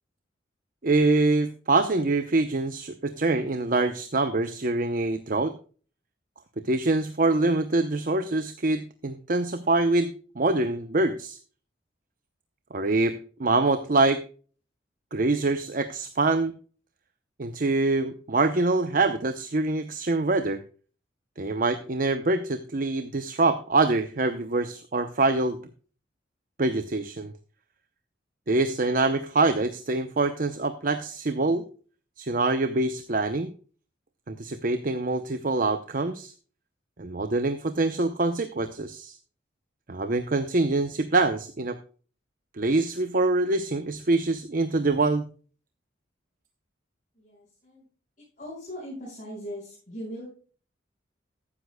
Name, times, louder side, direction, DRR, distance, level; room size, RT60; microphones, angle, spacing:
voice 1, 0.8-5.5 6.6-11.4 12.7-14.2 15.1-16.5 17.4-20.6 21.4-25.6 26.6-27.3 28.5-31.6 32.2-33.5 34.3-36.3 37.0-39.2 39.9-41.8 42.5-45.3, right 2 dB, 45° right, 9 dB, 0.7 m, -25 dB
voice 2, 47.1-47.9 48.4-50.3, equal, 45° left, -6 dB, 5.3 m, -39 dB
14.0 x 10.0 x 2.2 m, 0.39 s
head